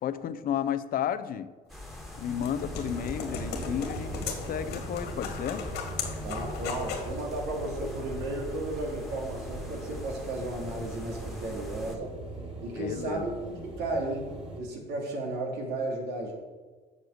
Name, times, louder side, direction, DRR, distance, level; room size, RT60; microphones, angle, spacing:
voice 1, 0.0-1.5 2.2-4.2 4.5-5.6 12.8-13.3, left 9 dB, 60° left, 12 dB, 0.7 m, -32 dB
sound 1, 1.7-12.0, left 1 dB, ahead, 1.9 m, -43 dB
sound 2, 1.9-7.1, left 5 dB, 80° left, 2.1 m, -37 dB
sound 3, 2.6-14.6, right 2 dB, 30° right, 3.2 m, -41 dB
voice 2, 6.2-12.2 12.6-14.3 14.5-16.3, right 2 dB, 80° right, -1 dB, 3.1 m, -34 dB
8.1 x 6.7 x 7.9 m, 1.4 s
cardioid pair, 110°, 17 cm